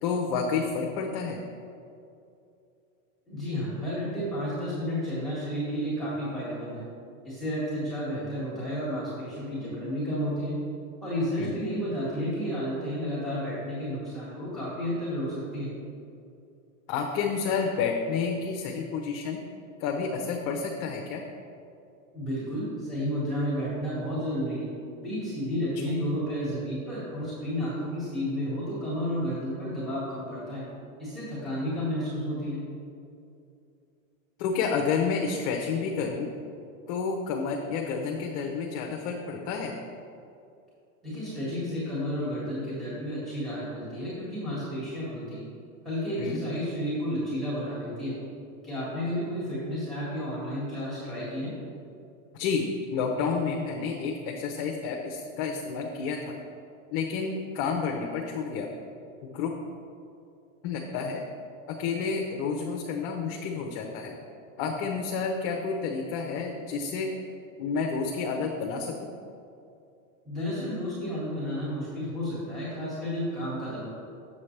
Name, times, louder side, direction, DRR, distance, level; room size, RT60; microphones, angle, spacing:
voice 1, 0.0-1.4 11.4-11.5 16.9-19.4 19.8-21.2 34.4-36.3 36.9-39.7 46.2-46.4 52.3-56.3 56.9-58.7 59.2-59.5 60.6-61.2 61.7-64.2 64.6-67.1 67.6-69.1, left 5 dB, 45° left, 1 dB, 0.7 m, -30 dB
voice 2, 3.3-6.8 7.2-10.5 11.0-15.7 22.1-24.7 25.0-30.6 31.0-32.6 41.0-45.4 45.8-48.1 48.6-51.5 70.3-73.9, equal, ahead, -10 dB, 1.8 m, -31 dB
7.4 x 7.2 x 3.2 m, 2.6 s
supercardioid pair, 140°, 40 cm